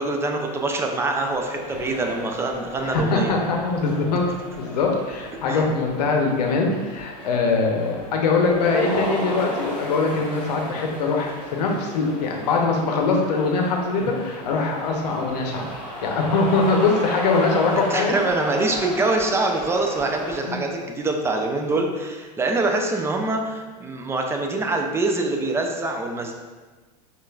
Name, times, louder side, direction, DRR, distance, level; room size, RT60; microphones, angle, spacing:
voice 1, 0.0-3.3 5.5-5.6 14.1-14.2 17.9-26.3, right 2 dB, 10° right, 2 dB, 0.4 m, -24 dB
sound 1, 1.2-20.4, equal, 5° left, 1.5 m, -35 dB
voice 2, 2.8-4.2 4.6-15.6 16.0-18.1 20.5-20.6, left 4 dB, 75° left, 1 dB, 0.7 m, -22 dB
5.1 x 2.5 x 2.3 m, 1.3 s
hypercardioid pair, 105°, 21 cm